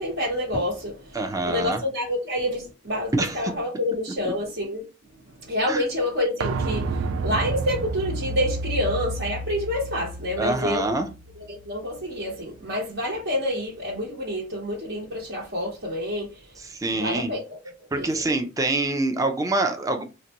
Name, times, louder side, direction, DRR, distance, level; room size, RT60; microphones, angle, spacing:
voice 1, 0.0-4.8 5.3-10.9 11.4-16.6 16.9-17.6 17.9-18.2, left 1 dB, 60° right, 1.0 m, -28 dB
voice 2, 1.1-1.8 3.1-3.4 4.2-4.3 5.7-5.8 10.4-11.1 16.7-17.3 17.9-20.0, right 2 dB, 15° right, 0.5 m, -25 dB
sound 1, 6.4-12.0 12.3-12.4, right 2 dB, 80° right, 0.3 m, -30 dB
3.9 x 2.2 x 2.9 m
head